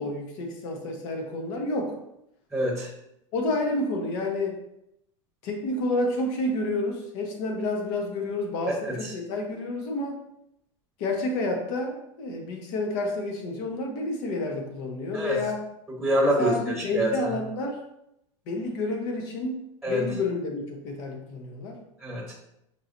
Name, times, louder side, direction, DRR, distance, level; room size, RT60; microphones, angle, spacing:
voice 1, 0.0-2.0 3.3-4.6 5.4-10.2 11.0-15.6 16.4-17.8 18.5-21.8, left 2 dB, 60° left, 2 dB, 1.1 m, -29 dB
voice 2, 2.5-2.9 9.0-9.1 15.1-15.4 16.0-17.3 19.8-20.0 22.0-22.3, equal, ahead, -3 dB, 1.0 m, -26 dB
5.8 x 3.0 x 2.6 m, 0.82 s
hypercardioid pair, 110°, 16 cm